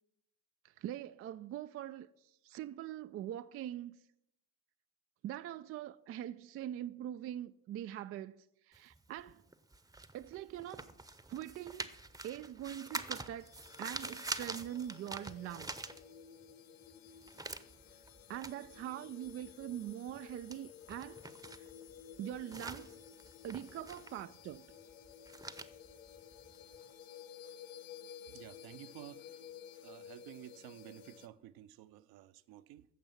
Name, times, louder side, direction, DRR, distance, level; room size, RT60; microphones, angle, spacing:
voice 1, 0.6-4.0 5.2-9.4 10.1-10.9 11.3-11.9 12.2-15.9 18.3-21.2 21.6-21.7 22.2-23.0 23.4-24.7, right 11 dB, 35° right, 0.4 m, -43 dB
sound 1, 8.7-16.5 16.8-26.9, right 2 dB, 10° right, 0.8 m, -46 dB
sound 2, 13.4-31.3, left 9 dB, 65° left, 1.0 m, -54 dB
voice 2, 28.3-29.3 29.8-32.8, right 13 dB, 55° right, 0.7 m, -52 dB
15.0 x 7.0 x 5.8 m
figure-of-eight pair, 45°, 45 cm